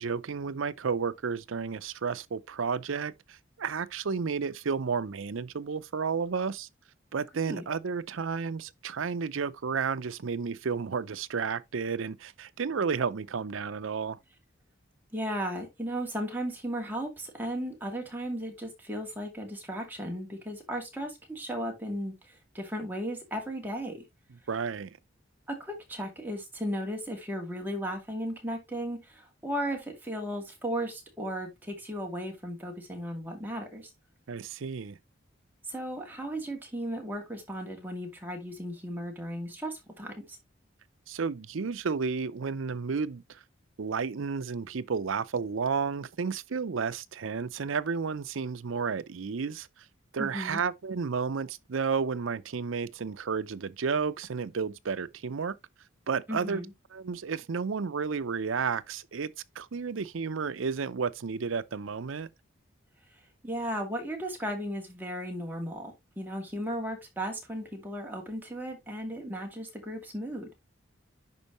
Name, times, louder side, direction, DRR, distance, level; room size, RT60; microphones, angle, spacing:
voice 1, 0.0-6.7 7.1-14.2 24.5-25.0 34.3-35.0 41.1-43.4 43.8-49.9 50.1-55.6 56.1-56.6 56.9-62.3, right 5 dB, 80° right, 0.5 m, -32 dB
voice 2, 15.1-24.0 25.5-33.9 35.7-40.4 50.2-50.6 56.3-56.7 63.4-70.5, equal, 10° right, 2.3 m, -35 dB
11.0 x 4.5 x 3.0 m
head